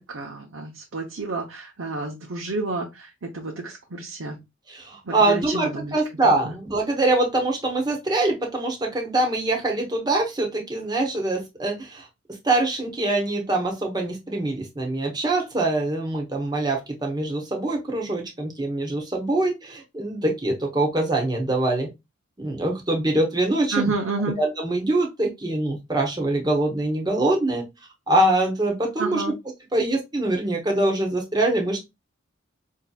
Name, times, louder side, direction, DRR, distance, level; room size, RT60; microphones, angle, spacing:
voice 1, 0.1-4.4 5.1-5.9 6.2-6.4 23.7-24.4 29.0-29.3, right 3 dB, 80° right, 0 dB, 0.8 m, -30 dB
voice 2, 4.7-12.1 12.4-21.9 22.4-23.9 24.4-27.6 28.1-29.2 29.7-31.8, right 2 dB, 20° right, 1 dB, 1.0 m, -24 dB
5.5 x 2.8 x 2.3 m, 0.22 s
head